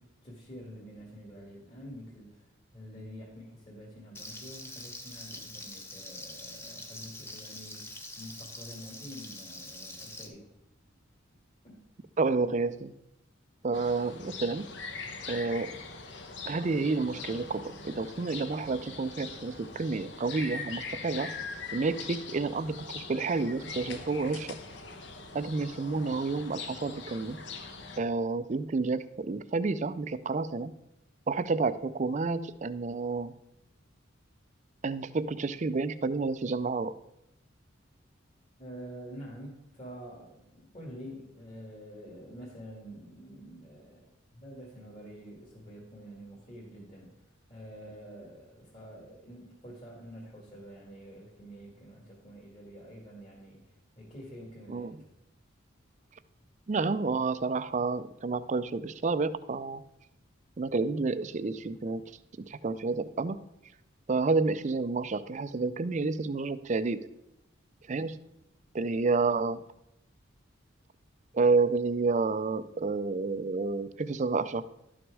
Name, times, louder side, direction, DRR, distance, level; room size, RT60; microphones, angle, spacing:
voice 1, 0.0-10.5 11.6-11.8 38.6-47.1 47.5-55.0, equal, 30° left, -4 dB, 1.9 m, -47 dB
Frying (food), 4.1-10.3, left 2 dB, 10° left, 0.7 m, -44 dB
voice 2, 12.2-12.9 13.6-14.7 15.3-15.8 16.5-21.3 21.7-24.6 25.3-27.4 28.0-30.7 31.3-33.3 34.8-36.9 54.7-55.0 56.7-59.8 60.6-62.0 62.5-63.4 64.1-67.1 67.9-68.2 68.7-69.6 71.3-74.7, right 3 dB, 35° right, 14 dB, 0.4 m, -30 dB
sound 1, 13.7-28.0, left 4 dB, 60° left, 0.9 m, -42 dB
12.0 x 6.1 x 4.7 m, 0.85 s
head